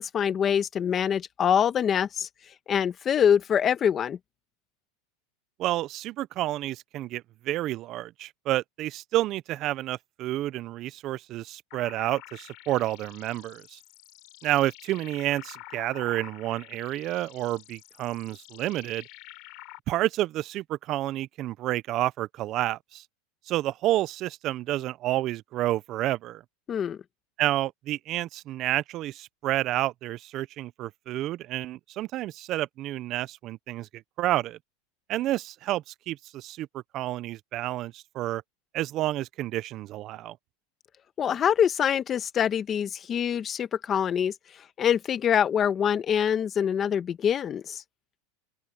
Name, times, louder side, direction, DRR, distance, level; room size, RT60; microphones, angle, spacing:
voice 1, 0.0-2.3 2.7-4.2 26.7-27.0 41.2-44.3 44.8-47.8, left 8 dB, 25° left, 1.2 m, -24 dB
voice 2, 5.6-13.8 14.4-19.0 19.9-23.0 23.5-26.4 27.4-34.6 35.1-38.4 38.7-40.4, right 15 dB, 35° right, 0.5 m, -30 dB
sound 1, 11.7-19.8, left 26 dB, 50° left, 5.1 m, -48 dB
open air
supercardioid pair, 155°, 0 cm